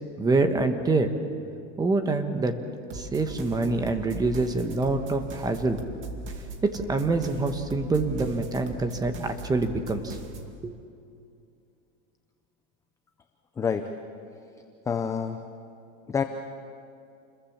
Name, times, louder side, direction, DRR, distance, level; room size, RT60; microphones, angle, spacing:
voice 1, 0.2-1.1 1.8-2.6 2.9-5.8 6.6-10.2 10.6-10.7, right 3 dB, 10° right, 7 dB, 1.1 m, -26 dB
sound 1, 2.9-10.5, right 3 dB, 35° right, 2.4 m, -40 dB
voice 2, 13.6-13.9 14.9-15.4 16.1-16.2, left 6 dB, 10° left, 6 dB, 0.5 m, -27 dB
29.0 x 21.5 x 7.3 m, 2.5 s
supercardioid pair, 165°, 36 cm